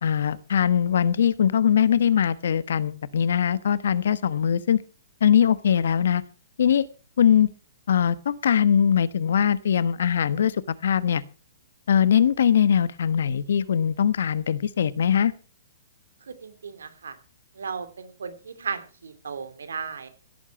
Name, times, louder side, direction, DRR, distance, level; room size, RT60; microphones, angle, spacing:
voice 1, 0.0-4.8 5.2-6.2 6.6-6.9 7.2-7.5 7.9-11.2 11.9-15.3, left 8 dB, 75° left, 17 dB, 1.1 m, -21 dB
voice 2, 16.2-17.2 17.5-20.1, right 5 dB, 85° right, 10 dB, 2.9 m, -35 dB
17.0 x 8.5 x 6.0 m, 0.38 s
hypercardioid pair, 140°, 0 cm